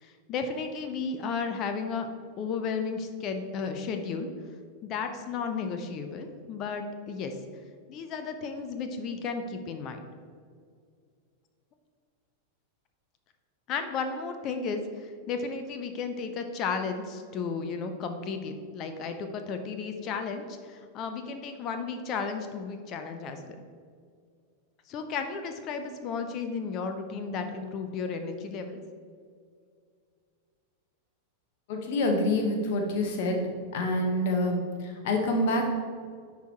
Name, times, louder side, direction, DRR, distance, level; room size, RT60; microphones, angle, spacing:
voice 1, 0.0-2.1 2.4-4.3 4.8-7.4 7.9-10.0 13.7-23.6 24.9-28.8, left 5 dB, 35° left, 7 dB, 0.6 m, -34 dB
voice 2, 31.7-33.4 33.7-35.7, left 1 dB, 50° left, 2 dB, 1.2 m, -27 dB
10.0 x 4.5 x 3.0 m, 2.1 s
figure-of-eight pair, 90°, 0 cm